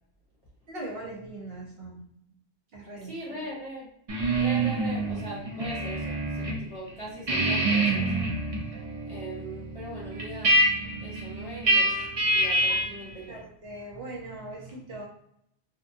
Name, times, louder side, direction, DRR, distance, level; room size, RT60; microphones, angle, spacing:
voice 1, 0.7-2.1 2.7-3.1 12.7-12.8 13.3-15.1, right 2 dB, 65° right, -3 dB, 0.9 m, -40 dB
voice 2, 2.9-3.9 4.3-8.3 9.1-10.6 11.0-12.0 12.3-13.4, right 1 dB, 35° left, -6 dB, 0.9 m, -40 dB
sound 1, 4.1-6.6 6.9-13.0, right 1 dB, 40° right, 0.5 m, -26 dB
2.8 x 2.2 x 2.6 m, 0.71 s
omnidirectional pair, 1.1 m